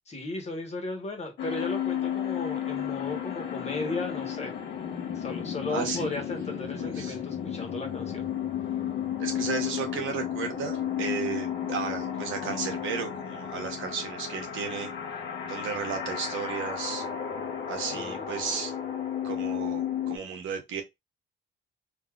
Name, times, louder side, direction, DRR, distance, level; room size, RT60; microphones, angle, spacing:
voice 1, 0.1-4.6 5.1-8.3 17.9-18.4, left 2 dB, 35° left, 1.2 m, -35 dB
sound 1, 1.4-20.2, left 9 dB, 70° left, 0.9 m, -33 dB
voice 2, 5.7-6.2 6.8-7.2 9.2-14.9 15.5-17.0 17.7-18.7 19.2-20.8, right 6 dB, 80° right, 1.0 m, -34 dB
3.4 x 2.7 x 2.3 m
cardioid pair, 90°, 20 cm